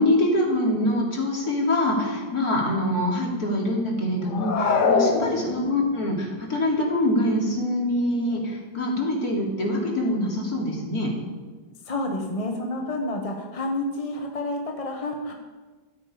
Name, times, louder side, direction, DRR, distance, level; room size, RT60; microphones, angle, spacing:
voice 1, 0.0-11.1, left 1 dB, 60° left, -3 dB, 3.8 m, -24 dB
sound 1, 4.3-5.9, left 4 dB, 80° left, 1.8 m, -23 dB
voice 2, 11.8-15.3, left 1 dB, 20° left, 1 dB, 1.4 m, -29 dB
14.0 x 14.0 x 5.2 m, 1.3 s
omnidirectional pair, 1.8 m